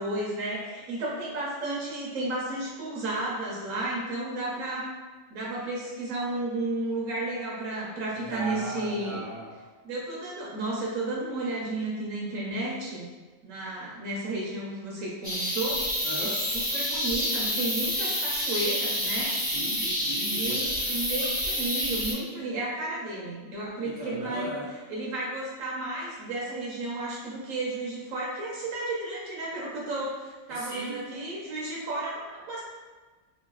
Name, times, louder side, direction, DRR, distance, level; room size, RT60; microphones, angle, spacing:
voice 1, 0.0-4.9 5.3-9.2 9.8-13.1 13.4-15.8 16.2-19.3 20.1-24.6 24.9-32.6, right 2 dB, 90° right, -5 dB, 1.2 m, -33 dB
voice 2, 8.1-9.6 16.0-16.4 19.4-20.8 23.8-24.7 30.5-31.1, right 1 dB, 40° right, -7 dB, 0.8 m, -37 dB
sound 1, 15.2-22.1, equal, 10° right, 0.8 m, -28 dB
3.1 x 2.4 x 2.3 m, 1.3 s
omnidirectional pair, 1.3 m